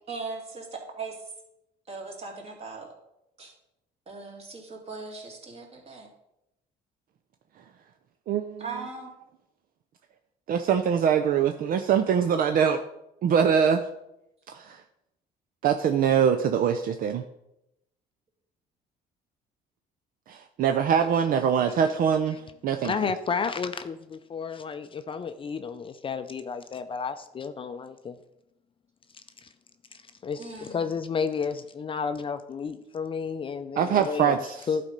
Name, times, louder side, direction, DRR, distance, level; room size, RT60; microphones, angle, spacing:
voice 1, 0.1-0.7 0.9-1.2 1.9-2.9 3.4-3.5 4.1-6.1 8.6-9.1 30.4-30.9, right 4 dB, 35° right, 0 dB, 2.5 m, -39 dB
voice 2, 8.3-8.6 10.5-12.8 13.2-13.8 14.5-14.8 15.6-17.2 20.3-22.4 22.6-22.9 33.8-34.7, right 7 dB, 55° right, 7 dB, 0.6 m, -23 dB
voice 3, 22.8-28.2 29.4-29.5 30.2-34.3 34.7-34.8, left 5 dB, 30° left, 10 dB, 0.5 m, -31 dB
11.0 x 4.3 x 5.2 m, 0.86 s
cardioid pair, 110°, 17 cm